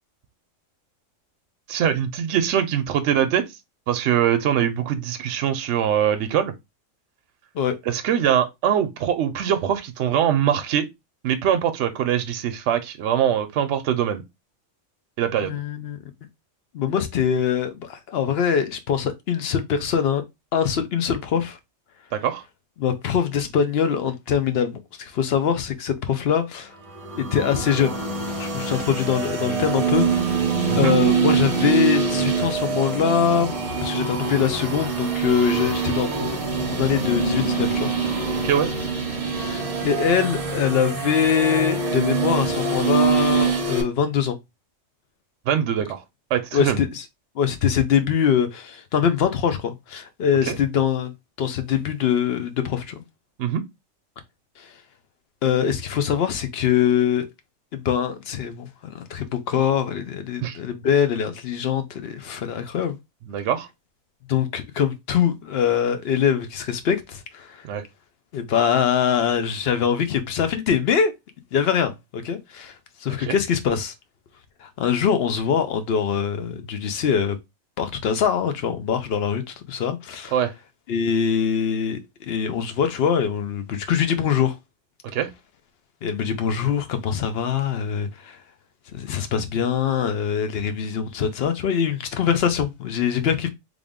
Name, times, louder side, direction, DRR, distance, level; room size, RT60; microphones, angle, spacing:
voice 1, 1.7-3.4 3.9-6.5 7.9-10.9 11.2-14.2 15.2-15.6 22.1-22.4 30.7-30.9 38.4-38.7 45.5-46.0 46.3-46.8 50.4-50.6 53.4-53.6 60.4-60.6 63.3-63.7 67.6-67.8 73.2-73.4 80.3-80.5 85.1-85.3, right 9 dB, 70° right, 0.8 m, -22 dB
voice 2, 15.4-16.0 16.7-20.2 20.5-21.6 22.8-26.7 27.2-28.0 28.4-30.2 30.8-37.9 39.4-44.4 46.5-47.0 47.4-53.0 54.6-54.7 55.4-57.3 57.7-63.0 64.3-67.7 68.3-71.1 71.5-72.7 73.0-73.9 74.6-77.4 77.8-80.3 80.9-84.6 86.0-88.4 88.9-93.5, left 8 dB, 60° left, 0.8 m, -23 dB
sound 1, 26.9-43.8, right 5 dB, 35° right, 0.7 m, -24 dB
3.4 x 2.5 x 3.5 m
omnidirectional pair, 1.3 m